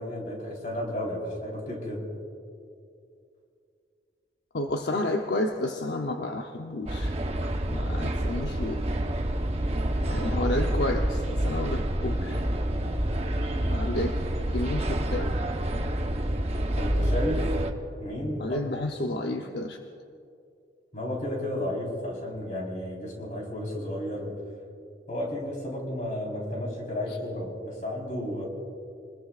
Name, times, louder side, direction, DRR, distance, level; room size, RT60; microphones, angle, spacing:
voice 1, 0.0-2.1 10.2-10.3 16.8-17.5 17.9-18.6 20.9-24.4 25.1-28.4, left 1 dB, 45° left, -1 dB, 4.1 m, -33 dB
voice 2, 4.5-7.2 7.7-8.8 10.1-12.4 13.6-14.1 14.5-15.4 18.4-19.8, left 1 dB, 70° left, 3 dB, 0.8 m, -31 dB
sound 1, 6.9-17.7, right 1 dB, 35° right, 0.9 m, -28 dB
26.0 x 20.5 x 2.5 m, 2.4 s
head